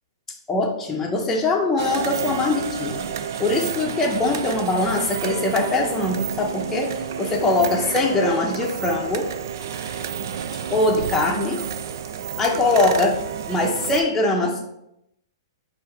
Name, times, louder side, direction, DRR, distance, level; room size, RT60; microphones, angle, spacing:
voice 1, 0.5-3.1 3.4-6.9 7.2-9.3 10.7-11.6 12.4-13.2 13.5-14.6, left 2 dB, 10° left, -1 dB, 0.6 m, -22 dB
sound 1, 1.8-14.0, right 8 dB, 65° right, 0.4 m, -30 dB
4.5 x 2.6 x 4.5 m, 0.81 s
hypercardioid pair, 130°, 2 cm